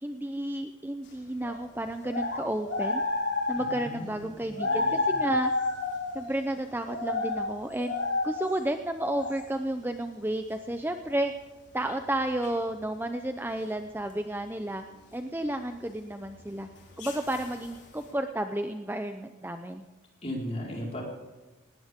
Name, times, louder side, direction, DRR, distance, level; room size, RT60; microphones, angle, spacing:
voice 1, 0.0-3.0 3.5-5.5 6.1-7.9 8.2-11.3 11.7-14.8 15.1-16.7 17.0-19.8, right 1 dB, 10° right, 7 dB, 0.6 m, -32 dB
sound 1, 1.4-1.5 2.0-3.9 4.6-6.2 6.7-7.5 7.8-8.5 9.0-9.4 12.4-12.7 16.5-18.0, left 3 dB, 55° left, 4.7 m, -30 dB
voice 2, 3.6-4.3 4.6-5.0 20.2-21.0, equal, 30° left, -3 dB, 4.8 m, -36 dB
18.5 x 18.5 x 3.7 m, 1.2 s
head